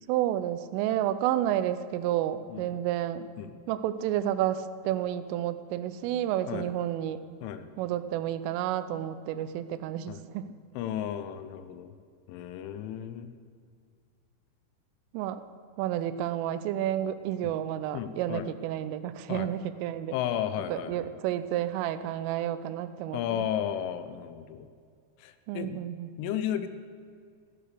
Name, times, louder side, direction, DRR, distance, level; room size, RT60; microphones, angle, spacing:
voice 1, 0.1-3.3 3.7-7.2 7.8-10.5 15.1-15.4 15.8-20.1 20.7-23.5 25.5-26.2, right 12 dB, 85° right, 12 dB, 3.2 m, -30 dB
voice 2, 10.7-11.9 12.3-13.3 17.4-17.5 17.9-18.5 19.3-19.5 20.1-21.1 23.1-24.7 25.2-25.8 26.2-26.7, left 10 dB, 85° left, 11 dB, 3.2 m, -33 dB
15.0 x 9.9 x 6.8 m, 2.2 s
omnidirectional pair, 5.7 m